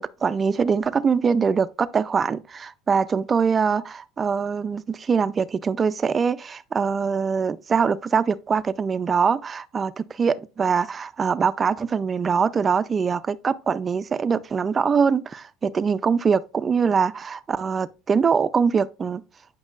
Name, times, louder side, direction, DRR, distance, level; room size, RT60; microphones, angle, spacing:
voice 1, 0.0-19.2, right 6 dB, 25° right, 0.4 m, -23 dB
9.0 x 5.3 x 2.4 m
supercardioid pair, 125°, 0 cm